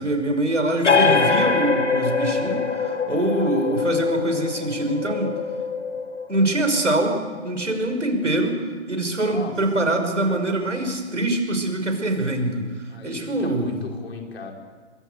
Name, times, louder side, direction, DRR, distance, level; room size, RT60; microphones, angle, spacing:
voice 1, 0.0-5.3 6.3-7.2 7.4-12.7 13.0-13.8, right 1 dB, 80° right, 6 dB, 5.7 m, -24 dB
sound 1, 0.8-8.1, left 5 dB, 75° left, 2.8 m, -24 dB
voice 2, 0.8-1.2 9.2-9.5 12.9-14.5, left 4 dB, 60° left, 2 dB, 5.4 m, -37 dB
27.0 x 22.5 x 8.1 m, 1.5 s
figure-of-eight pair, 120°, 36 cm